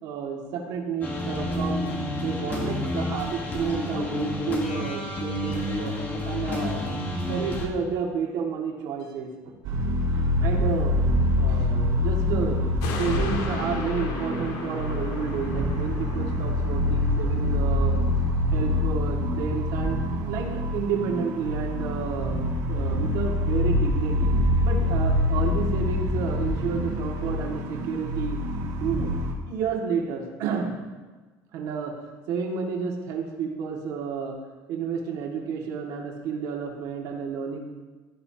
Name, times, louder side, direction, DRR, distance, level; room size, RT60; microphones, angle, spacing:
voice 1, 0.0-5.9 6.3-6.8 7.3-9.3 10.1-11.0 11.4-12.7 13.0-18.0 18.5-24.3 24.6-28.4 28.8-29.1 29.5-30.7 31.5-31.9 32.3-34.4 34.7-37.6, right 6 dB, 65° right, -1 dB, 2.2 m, -31 dB
sound 1, 1.0-7.7, left 1 dB, 25° left, 1.6 m, -30 dB
sound 2, 9.6-29.3, left 1 dB, 80° right, 2.6 m, -25 dB
sound 3, 12.8-19.5 19.9-20.0, left 5 dB, 85° left, 1.8 m, -38 dB
16.0 x 12.5 x 2.9 m, 1.3 s
cardioid pair, 175°, 8 cm